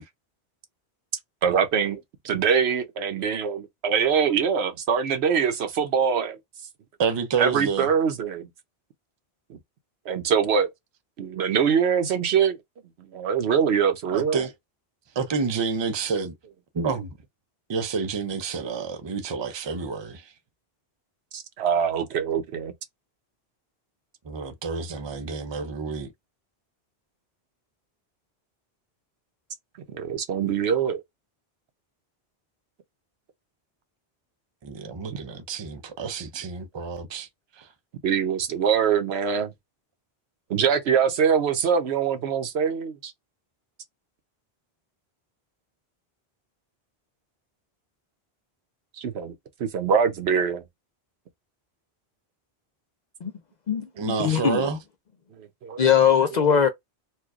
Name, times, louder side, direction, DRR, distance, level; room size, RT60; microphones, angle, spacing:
voice 1, 1.4-6.4 7.4-8.5 9.5-9.6 10.1-10.7 11.2-12.6 13.0-14.5 21.3-22.7 29.9-31.0 35.1-35.2 38.0-39.5 40.5-43.1 49.0-49.3 49.6-50.6 55.4-55.9 56.3-56.5, right 7 dB, 80° right, 1.0 m, -23 dB
voice 2, 7.0-7.9 14.1-14.5 15.2-16.3 16.7-17.2 17.7-20.2 24.2-26.1 34.6-37.3 37.6-37.7 54.0-54.8, right 5 dB, 40° right, 0.4 m, -29 dB
voice 3, 53.7-54.7 55.8-56.7, left 8 dB, 55° left, 0.5 m, -20 dB
4.3 x 2.3 x 2.4 m
omnidirectional pair, 1.1 m